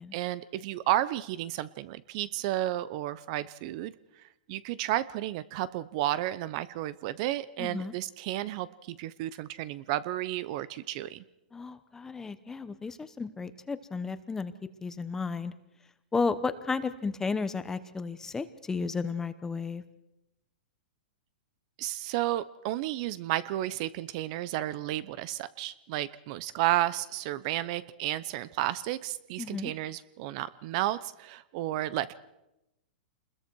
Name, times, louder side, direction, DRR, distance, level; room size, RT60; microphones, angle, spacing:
voice 1, 0.1-3.9 4.5-11.2 21.8-32.1, right 14 dB, 45° right, 18 dB, 0.7 m, -32 dB
voice 2, 7.6-7.9 11.5-14.5 14.8-15.5 16.1-19.8 29.4-29.7, left 4 dB, 10° left, 13 dB, 0.9 m, -33 dB
27.0 x 21.0 x 4.6 m, 0.91 s
hypercardioid pair, 150°, 5 cm